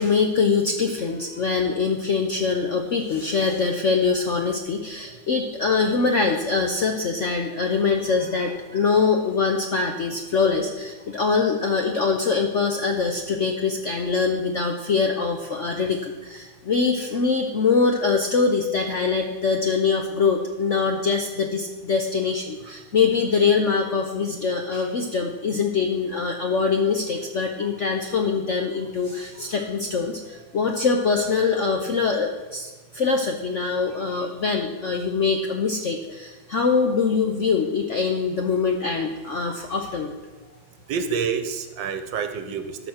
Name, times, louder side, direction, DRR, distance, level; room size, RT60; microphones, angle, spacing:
voice 1, 0.0-40.2, left 5 dB, 60° left, 3 dB, 0.8 m, -23 dB
voice 2, 40.9-42.9, right 6 dB, 75° right, 8 dB, 1.5 m, -28 dB
13.0 x 5.2 x 6.4 m, 1.2 s
omnidirectional pair, 2.1 m